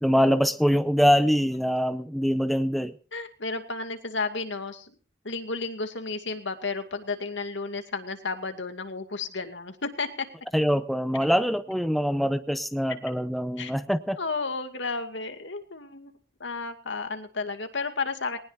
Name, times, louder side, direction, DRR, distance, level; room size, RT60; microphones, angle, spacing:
voice 1, 0.0-2.9 10.5-14.2, equal, ahead, 11 dB, 0.7 m, -24 dB
voice 2, 3.1-4.9 5.2-10.3 13.6-13.7 14.2-16.1 16.4-18.4, left 4 dB, 75° left, 7 dB, 2.3 m, -32 dB
20.0 x 19.5 x 2.7 m, 0.39 s
head